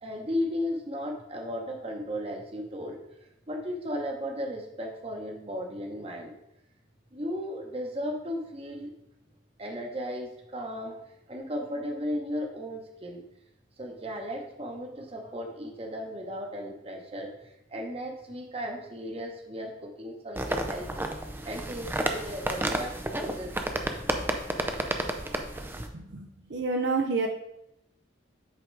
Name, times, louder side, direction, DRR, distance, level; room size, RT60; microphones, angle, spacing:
voice 1, 0.0-3.0 3.5-6.3 7.1-8.9 9.6-11.0 11.3-13.2 13.8-21.1 21.4-23.5 23.8-24.0, equal, 30° right, 2 dB, 1.0 m, -35 dB
sound 1, 20.4-25.9, right 1 dB, 10° right, 0.5 m, -31 dB
voice 2, 25.9-27.3, right 3 dB, 60° right, 2 dB, 0.6 m, -29 dB
7.8 x 3.8 x 4.6 m, 0.82 s
head